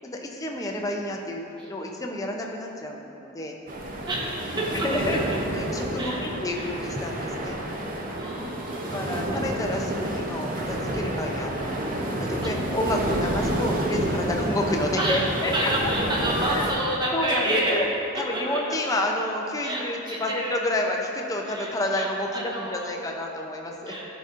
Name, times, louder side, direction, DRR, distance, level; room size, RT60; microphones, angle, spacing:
voice 1, 0.0-1.4 1.7-3.6 4.7-5.2 5.5-7.6 8.9-11.8 12.2-15.9 16.5-16.7 17.1-17.9 18.2-24.0, left 1 dB, 15° left, 1 dB, 0.5 m, -29 dB
sound 1, 3.7-16.7, right 1 dB, 40° right, 0.6 m, -29 dB
voice 2, 4.1-5.4 6.0-6.2 6.5-6.7 8.2-9.2 15.0-17.7 18.3-18.8 19.6-20.5 21.4-22.1 22.3-22.9 23.9-24.1, right 1 dB, 20° right, -5 dB, 1.0 m, -29 dB
12.0 x 4.0 x 2.5 m, 2.9 s
head